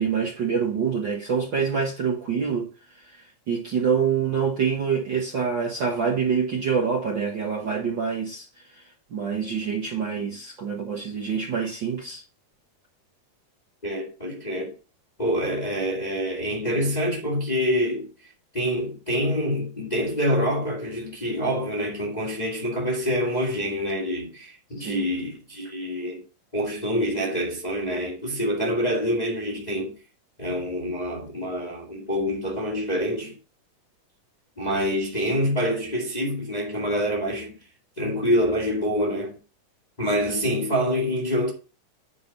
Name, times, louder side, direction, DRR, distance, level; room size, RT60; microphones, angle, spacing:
voice 1, 0.0-2.7 3.0-3.2 3.5-8.5 8.7-8.8 9.1-12.2 24.8-25.0, right 6 dB, 45° right, 1.6 m, -26 dB
voice 2, 13.8-14.7 15.2-18.1 18.5-26.2 26.5-29.9 30.4-33.4 34.6-37.5 38.0-39.4 40.0-41.5, equal, 15° left, 1.7 m, -26 dB
9.4 x 4.7 x 5.4 m
omnidirectional pair, 3.7 m